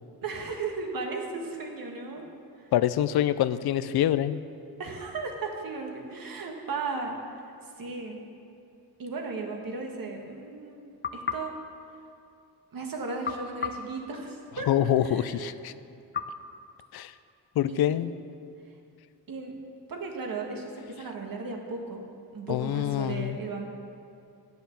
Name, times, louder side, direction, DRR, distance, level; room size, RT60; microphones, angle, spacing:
voice 1, 0.2-2.3 2.6-2.7 4.8-8.2 9.0-11.5 12.7-14.7 15.0-15.5 17.7-18.0 19.3-19.5 19.9-22.0 22.3-23.6, right 4 dB, 65° right, 2 dB, 1.6 m, -36 dB
voice 2, 2.7-4.4 14.7-15.7 16.9-17.1 17.6-18.1 22.5-23.4, left 11 dB, 75° left, 14 dB, 0.5 m, -25 dB
sound 1, 11.0-12.6 13.2-14.8 16.1-17.5, left 6 dB, 30° left, 0.6 m, -38 dB
9.4 x 7.9 x 7.0 m, 2.5 s
cardioid pair, 95°, 38 cm